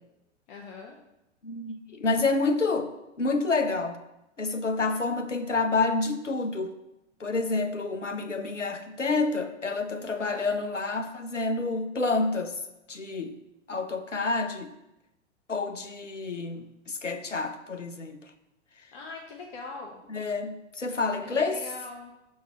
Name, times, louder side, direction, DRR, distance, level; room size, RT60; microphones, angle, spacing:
voice 1, 0.5-1.0 10.1-10.4 16.5-16.7 18.9-20.0 21.3-22.1, left 3 dB, 40° left, 0 dB, 1.0 m, -42 dB
voice 2, 1.4-4.0 4.4-6.7 7.2-12.6 12.9-13.4 13.7-14.7 15.5-18.3 20.1-21.6, left 3 dB, 90° left, 7 dB, 0.8 m, -28 dB
6.3 x 4.6 x 5.7 m, 0.91 s
figure-of-eight pair, 100°, 36 cm